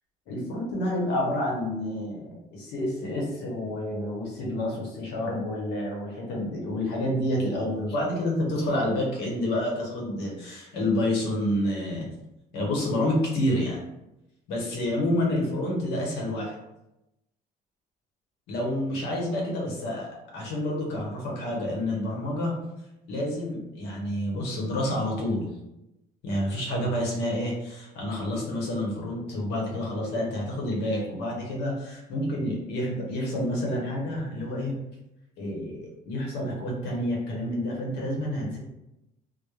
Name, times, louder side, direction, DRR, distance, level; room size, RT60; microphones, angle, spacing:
voice 1, 0.3-12.1 12.5-13.8 14.5-16.6 18.5-22.5 23.1-25.5 26.2-34.8 35.4-38.6, left 1 dB, 90° left, -2 dB, 0.8 m, -29 dB
2.3 x 2.0 x 3.0 m, 0.90 s
cardioid pair, 110°, 17 cm